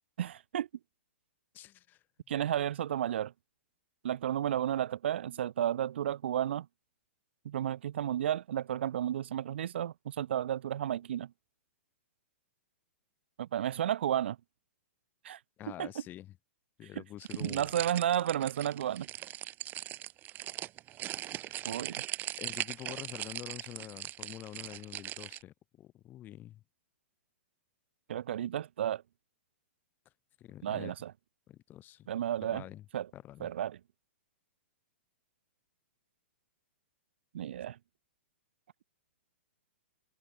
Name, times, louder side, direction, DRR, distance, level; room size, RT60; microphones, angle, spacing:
voice 1, 0.2-0.7 2.3-3.3 4.0-6.7 7.4-11.3 13.4-14.4 15.2-15.4 15.8-15.9 17.4-19.1 21.6-22.0 28.1-29.0 30.6-31.1 32.1-32.6 32.9-33.1 33.4-33.8 37.3-37.8, right 11 dB, 65° right, 0.7 m, -32 dB
voice 2, 1.5-2.0 15.6-16.3 16.8-17.8 21.5-21.8 22.4-26.6 30.4-30.9 31.5-32.1 32.4-32.9 33.1-33.5, left 13 dB, 30° left, 3.8 m, -47 dB
sound 1, 17.2-25.4, right 14 dB, 30° right, 1.3 m, -40 dB
hypercardioid pair, 115°, 7 cm